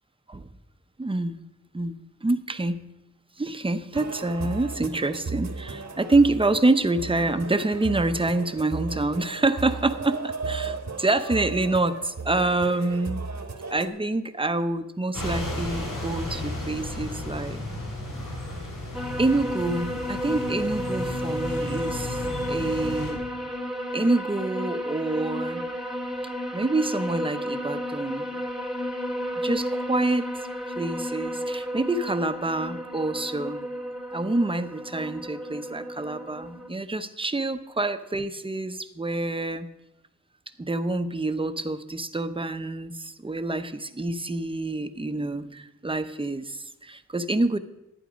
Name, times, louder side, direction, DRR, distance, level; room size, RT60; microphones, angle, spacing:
voice 1, 1.0-1.4 1.7-2.9 3.4-13.3 13.7-17.6 19.2-23.2 23.9-25.7 26.5-28.4 29.4-30.5 30.8-33.6 34.1-39.7 40.6-47.6, right 2 dB, 15° right, 10 dB, 0.7 m, -27 dB
sound 1, 3.9-13.9, right 4 dB, 65° right, 1.2 m, -35 dB
sound 2, 15.1-23.1, left 1 dB, 90° left, 3.3 m, -34 dB
sound 3, 18.9-36.7, equal, ahead, 1.1 m, -32 dB
11.5 x 9.4 x 5.1 m, 0.95 s
wide cardioid pair, 85°, 30 cm